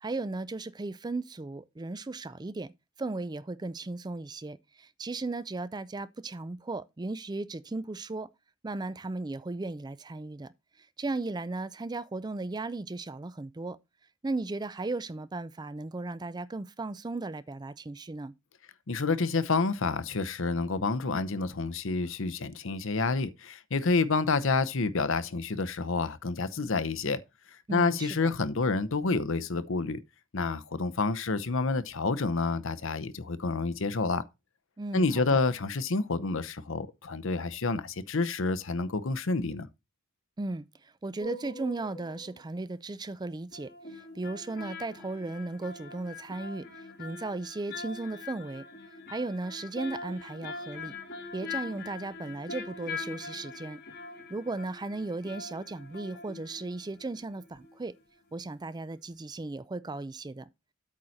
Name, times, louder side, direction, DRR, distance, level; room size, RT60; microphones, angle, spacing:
voice 1, 0.0-2.7 3.0-8.3 8.6-10.5 10.8-13.8 14.2-18.3 27.7-28.3 34.8-35.4 40.4-48.6 49.1-51.0 51.3-53.8 54.3-57.9 58.3-60.5, right 2 dB, 20° right, 0.4 m, -36 dB
voice 2, 18.9-27.2 27.7-30.0 30.3-34.2 34.9-39.7, left 3 dB, 65° left, 0.8 m, -29 dB
sound 1, 41.2-42.4 43.5-58.0 58.3-58.4, left 4 dB, 50° left, 2.9 m, -43 dB
8.6 x 4.2 x 6.4 m
head